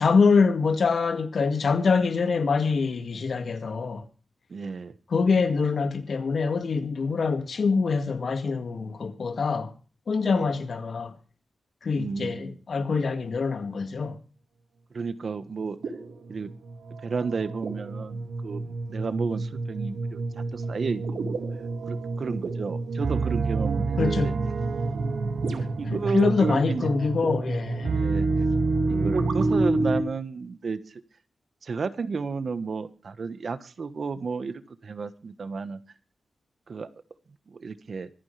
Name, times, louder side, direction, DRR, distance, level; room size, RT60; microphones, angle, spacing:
voice 1, 0.0-4.0 5.1-9.7 10.1-11.1 11.8-14.2 24.0-24.3 25.9-27.9, left 4 dB, 55° left, 2.1 m, -25 dB
voice 2, 4.5-4.9 10.3-10.4 12.0-12.6 14.9-15.8 16.3-16.5 17.0-21.4 21.9-24.3 25.5-26.9 27.9-28.3 28.9-30.8 31.6-35.8 36.7-36.9 37.5-38.1, right 5 dB, 50° right, 1.3 m, -32 dB
sound 1, 12.9-13.2 15.8-30.0, right 3 dB, 85° right, 2.3 m, -28 dB
25.5 x 9.8 x 3.3 m
wide cardioid pair, 165°, 0 cm